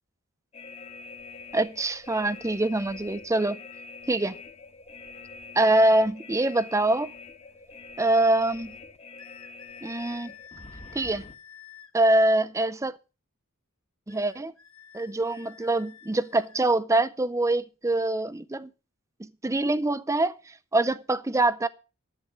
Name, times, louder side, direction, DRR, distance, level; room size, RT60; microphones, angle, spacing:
sound 1, 0.5-11.4, left 4 dB, 30° left, 1.2 m, -45 dB
voice 1, 1.5-3.6 4.1-4.3 5.6-7.1 8.0-8.7 9.8-10.3 10.9-11.2 11.9-13.0 14.1-14.5 14.9-18.7 19.2-20.3 20.7-21.7, right 2 dB, 15° right, 0.5 m, -24 dB
sound 2, 9.2-12.0 14.1-16.7, left 8 dB, 65° left, 1.5 m, -50 dB
11.0 x 8.6 x 6.1 m
head